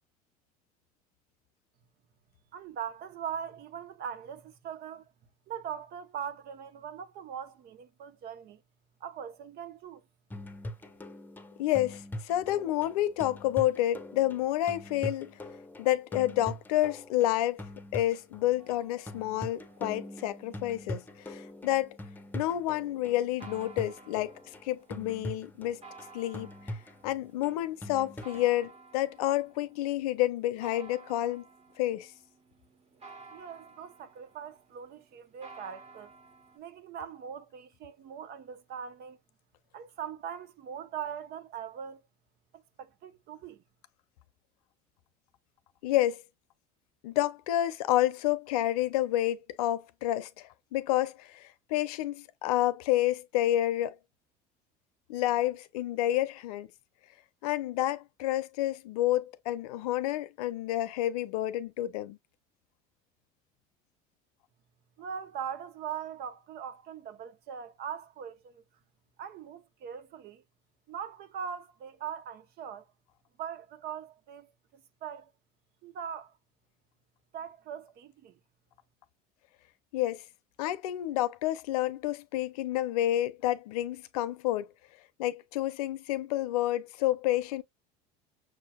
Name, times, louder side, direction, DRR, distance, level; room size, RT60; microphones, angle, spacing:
voice 1, 2.5-5.0 5.5-8.6 9.0-10.0 33.3-36.1 36.5-39.2 39.7-42.0 42.5-43.6 65.0-68.6 69.2-70.4 70.9-72.9 73.4-75.3 75.8-76.3 77.3-78.4, right 8 dB, 55° right, 0.9 m, -41 dB
sound 1, 10.3-28.5, left 1 dB, 10° left, 0.9 m, -43 dB
voice 2, 11.6-15.4 15.8-17.6 17.9-22.0 22.3-24.3 24.6-25.8 26.1-26.5 27.0-31.4 31.8-32.1 45.8-46.2 47.0-53.9 55.1-56.7 57.4-62.2 79.9-80.2 80.6-84.7 85.2-87.6, left 14 dB, 90° left, 0.6 m, -29 dB
sound 2, 18.6-36.6, right 3 dB, 35° right, 1.5 m, -55 dB
6.3 x 2.8 x 2.3 m
supercardioid pair, 90°, 19 cm